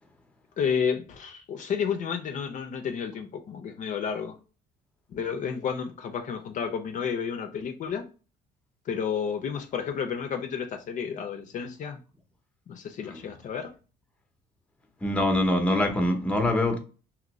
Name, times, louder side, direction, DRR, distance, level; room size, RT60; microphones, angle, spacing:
voice 1, 0.6-4.4 5.1-8.1 8.9-12.0 12.7-13.7, left 7 dB, 50° left, 0.5 m, -31 dB
voice 2, 15.0-16.8, left 1 dB, 5° left, 0.7 m, -24 dB
2.9 x 2.5 x 3.0 m
cardioid pair, 110°, 17 cm